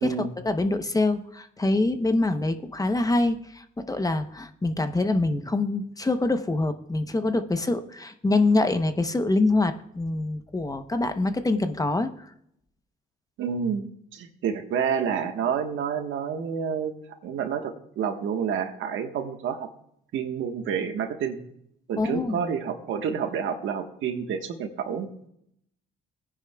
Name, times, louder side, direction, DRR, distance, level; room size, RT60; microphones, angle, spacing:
voice 1, 0.0-12.1 22.0-22.4, left 2 dB, 15° left, 9 dB, 0.8 m, -25 dB
voice 2, 13.4-16.9 17.2-19.7 20.1-21.4 21.9-25.1, right 7 dB, 80° right, 5 dB, 1.4 m, -29 dB
18.0 x 9.9 x 2.3 m, 0.72 s
cardioid pair, 90°, 20 cm